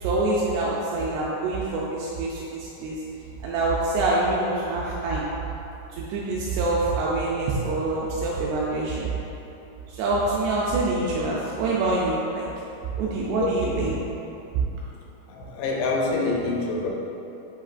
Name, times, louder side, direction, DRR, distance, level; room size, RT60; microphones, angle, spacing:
voice 1, 0.0-3.0 3.4-5.2 5.9-9.1 9.9-12.5 13.0-14.0, right 2 dB, 85° right, -5 dB, 2.3 m, -25 dB
voice 2, 13.4-13.9 15.3-16.9, left 2 dB, 85° left, -2 dB, 2.9 m, -26 dB
7.7 x 2.8 x 2.4 m, 2.9 s
omnidirectional pair, 5.1 m